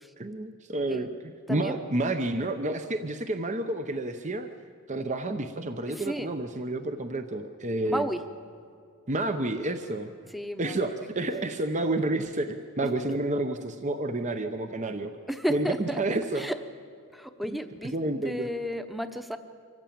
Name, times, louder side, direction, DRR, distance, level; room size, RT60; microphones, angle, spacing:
voice 1, 0.2-4.5 4.9-8.1 9.1-10.1 10.6-15.1 15.5-16.5 17.5-17.6 17.9-18.5, right 2 dB, 35° right, 8 dB, 0.8 m, -30 dB
voice 2, 5.9-6.3 7.8-8.2 10.3-11.1 15.3-16.0 16.3-16.6 17.1-17.9 18.2-19.4, equal, ahead, 8 dB, 0.9 m, -33 dB
25.0 x 15.0 x 8.7 m, 2.3 s
head